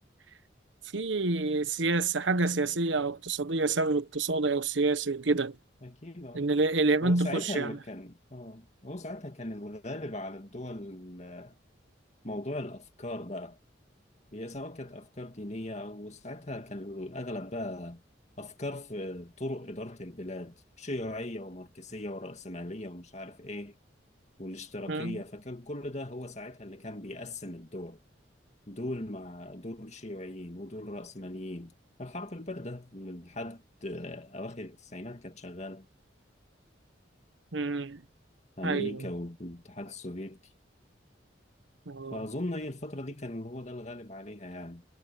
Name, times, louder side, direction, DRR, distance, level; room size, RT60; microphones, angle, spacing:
voice 1, 0.9-5.6 6.3-7.7 24.9-25.2 37.5-38.0 38.6-39.0 41.9-42.2, right 3 dB, 80° right, 1.2 m, -28 dB
voice 2, 5.8-6.5 7.0-11.5 12.2-13.6 14.3-18.0 18.4-23.8 24.4-28.0 28.7-31.7 32.0-35.9 38.6-40.4 42.1-44.8, left 1 dB, 35° left, 2.2 m, -39 dB
head